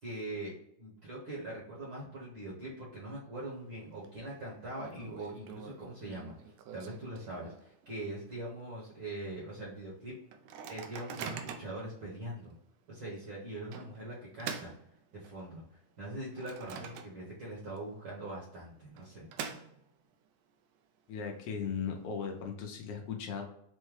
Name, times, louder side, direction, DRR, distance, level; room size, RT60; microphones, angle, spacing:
voice 1, 0.0-6.3 6.7-10.1 10.7-12.5 12.9-14.7 15.1-19.3, right 1 dB, 55° right, -6 dB, 1.4 m, -42 dB
Microwave oven, 3.5-4.1 4.3-4.4 4.8-7.9 8.3-8.4 8.6-9.0 9.5-9.6 10.3-11.8 12.4-12.6 13.7-15.5 16.0-17.5 17.8-17.9 18.7-20.1, right 7 dB, 80° right, 1.6 m, -45 dB
voice 2, 21.1-23.4, left 6 dB, 75° left, 2 dB, 1.4 m, -37 dB
5.4 x 2.1 x 3.1 m, 0.75 s
omnidirectional pair, 3.4 m